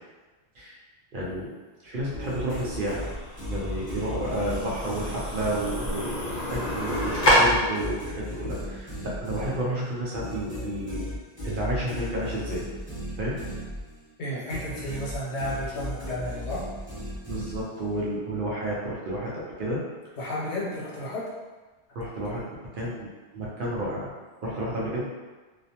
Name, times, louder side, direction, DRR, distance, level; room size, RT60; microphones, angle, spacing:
voice 1, 1.1-1.5 1.8-3.1 3.5-11.0 11.4-12.6 13.2-13.4 17.2-19.8 21.9-22.4 22.8-24.1 24.4-25.0, right 1 dB, 60° right, -5 dB, 0.7 m, -31 dB
sound 1, 2.0-7.3, left 1 dB, 50° left, 0.7 m, -29 dB
sound 2, 2.1-6.1 6.5-14.1 14.5-18.0, left 1 dB, 10° right, 1.0 m, -36 dB
voice 2, 14.2-16.7 20.2-21.3, left 1 dB, 80° left, -6 dB, 1.0 m, -32 dB
2.4 x 2.0 x 2.7 m, 1.3 s
omnidirectional pair, 1.1 m